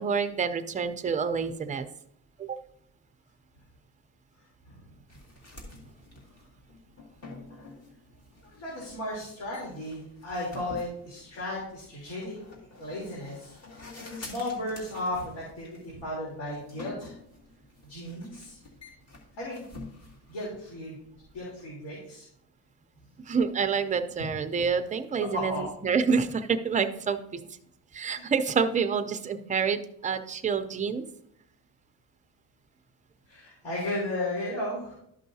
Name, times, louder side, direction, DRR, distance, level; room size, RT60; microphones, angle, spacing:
voice 1, 0.0-1.9 2.4-2.6 23.3-27.4 27.9-31.0, right 6 dB, 20° right, 8 dB, 0.4 m, -28 dB
sound 1, 5.1-21.5, left 2 dB, 35° left, 2.2 m, -49 dB
voice 2, 8.4-13.8 14.2-17.1 17.9-18.6 19.4-19.6 20.3-20.9 21.3-22.2 25.3-25.6 28.1-28.2 33.3-34.9, left 1 dB, 75° left, -5 dB, 3.3 m, -35 dB
12.5 x 5.5 x 2.7 m, 0.73 s
cardioid pair, 140°, 43 cm